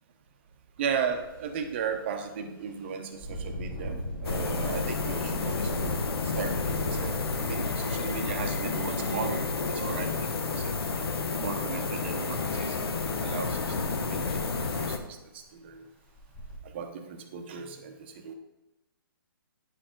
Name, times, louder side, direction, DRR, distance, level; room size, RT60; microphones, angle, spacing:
voice 1, 0.8-4.0 4.2-10.1 10.6-10.8 11.4-14.2 14.8-15.2 15.5-15.8 16.7-18.3, right 6 dB, 30° right, 5 dB, 0.8 m, -36 dB
Engine, 1.1-1.3 1.7-1.9 3.1-8.9 9.8-9.9 10.3-11.1 12.8-13.0 13.3-13.4 13.9-14.0 14.3-14.8 15.4-15.5 16.1-16.6, right 1 dB, 10° left, 1.1 m, -39 dB
sound 1, 4.2-15.0, left 4 dB, 90° left, 1.0 m, -30 dB
9.5 x 4.9 x 3.8 m, 1.0 s
hypercardioid pair, 170°, 12 cm